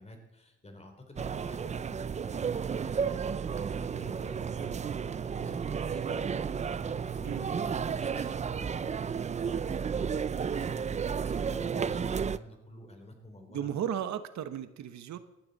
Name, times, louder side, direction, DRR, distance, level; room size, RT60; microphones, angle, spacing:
voice 1, 0.0-13.8, left 1 dB, 20° left, 4 dB, 3.3 m, -50 dB
sound 1, 1.2-12.4, right 6 dB, 25° right, 0.4 m, -32 dB
voice 2, 7.2-7.6 13.5-15.2, right 9 dB, 70° right, 10 dB, 1.1 m, -35 dB
19.5 x 13.5 x 4.1 m, 0.99 s
cardioid pair, 135°, 29 cm